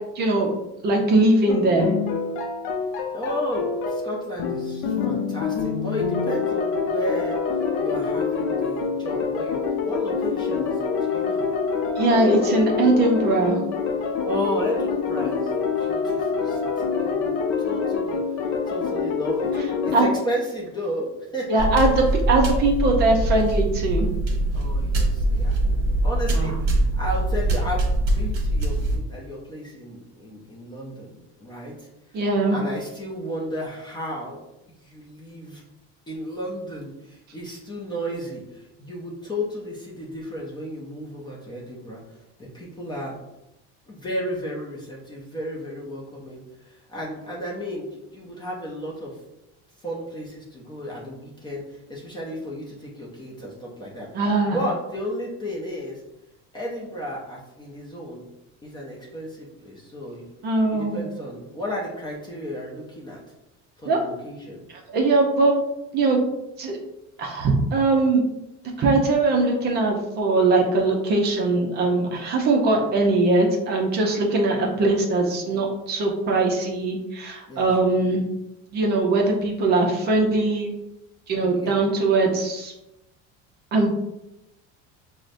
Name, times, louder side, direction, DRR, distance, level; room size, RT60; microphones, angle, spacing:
voice 1, 0.2-0.5 0.8-1.9 12.0-13.6 19.9-20.1 21.5-24.1 26.3-26.5 32.1-32.6 54.1-54.6 60.4-61.0 63.9-64.0 64.9-65.5 65.9-66.2 66.6-66.8 67.2-68.2 68.8-78.2 78.7-80.7 81.3-82.7 83.7-83.9, right 2 dB, 35° right, 1 dB, 0.5 m, -21 dB
sound 1, 1.5-20.1, left 5 dB, 75° left, 0.6 m, -26 dB
voice 2, 3.1-11.5 12.6-12.8 14.2-17.3 17.6-19.5 19.8-21.9 24.5-25.6 26.0-27.8 28.1-34.4 34.8-35.6 36.1-43.1 43.9-49.2 49.8-54.1 54.4-56.0 56.5-58.3 58.6-60.2 60.7-63.2 63.8-64.6 77.5-77.7 81.4-81.8, equal, 15° left, -4 dB, 0.4 m, -33 dB
sound 2, 21.6-29.0, right 1 dB, 50° right, 1.0 m, -23 dB
6.1 x 2.1 x 2.5 m, 0.92 s
cardioid pair, 170°, 30 cm